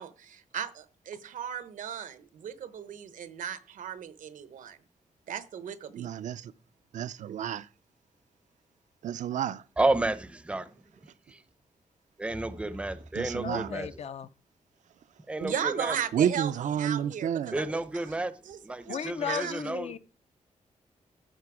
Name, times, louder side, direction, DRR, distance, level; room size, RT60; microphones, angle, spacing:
voice 1, 0.0-4.8 5.3-6.1 15.4-16.5 16.8-18.1 18.4-19.0 19.2-19.6, right 8 dB, 90° right, 0.8 m, -36 dB
voice 2, 5.9-6.5 6.9-7.7 9.0-9.6 13.1-13.7 16.1-17.6, right 9 dB, 70° right, 0.4 m, -30 dB
voice 3, 9.8-10.7 11.3-11.4 12.2-13.9 15.3-16.0 17.5-18.3 18.6-19.9, right 2 dB, 10° right, 0.5 m, -31 dB
voice 4, 13.4-14.3 18.9-20.0, left 8 dB, 55° left, 0.4 m, -35 dB
14.0 x 5.2 x 4.8 m
wide cardioid pair, 160°, 13 cm